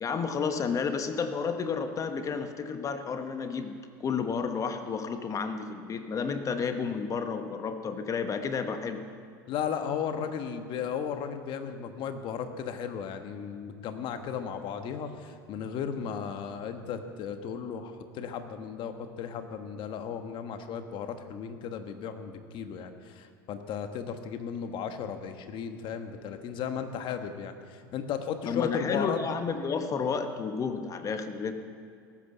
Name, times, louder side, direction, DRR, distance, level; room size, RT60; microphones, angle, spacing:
voice 1, 0.0-9.0 28.5-31.5, left 5 dB, 30° left, 8 dB, 1.2 m, -31 dB
voice 2, 9.5-29.2, left 7 dB, 50° left, 7 dB, 1.4 m, -35 dB
18.5 x 8.8 x 6.9 m, 2.4 s
hypercardioid pair, 95°, 11 cm